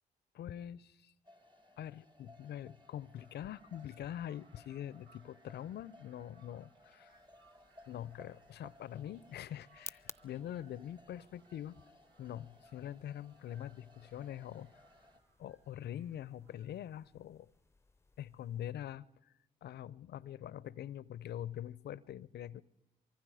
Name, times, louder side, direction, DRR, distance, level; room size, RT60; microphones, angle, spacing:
voice 1, 0.3-1.1 1.8-7.2 7.9-11.8 12.2-14.8 15.4-17.5 18.2-19.0 19.6-22.6, left 11 dB, 65° left, 21 dB, 0.6 m, -44 dB
sound 1, 1.2-15.2, left 1 dB, 25° right, 1.8 m, -63 dB
sound 2, 2.8-16.7, right 4 dB, 80° right, 1.5 m, -70 dB
sound 3, 7.1-18.7, left 3 dB, 15° left, 0.7 m, -59 dB
25.0 x 23.0 x 4.9 m, 0.93 s
hypercardioid pair, 45°, 18 cm